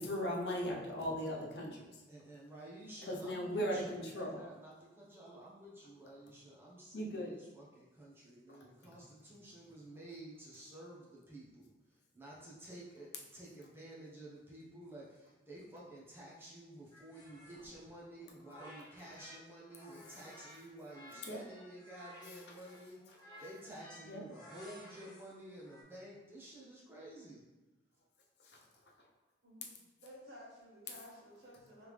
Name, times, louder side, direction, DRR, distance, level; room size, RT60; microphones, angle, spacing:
voice 1, 0.0-1.9 3.1-4.3 6.9-7.3 21.3-21.4 24.0-24.2, equal, 60° left, -1 dB, 0.8 m, -37 dB
voice 2, 2.1-11.7 12.1-27.4, right 1 dB, 10° right, -6 dB, 0.9 m, -52 dB
sound 1, 16.9-19.4 19.7-25.8, equal, 20° left, 0.8 m, -56 dB
voice 3, 30.0-31.9, equal, 55° right, -7 dB, 1.5 m, -54 dB
3.5 x 3.4 x 3.2 m, 1.1 s
head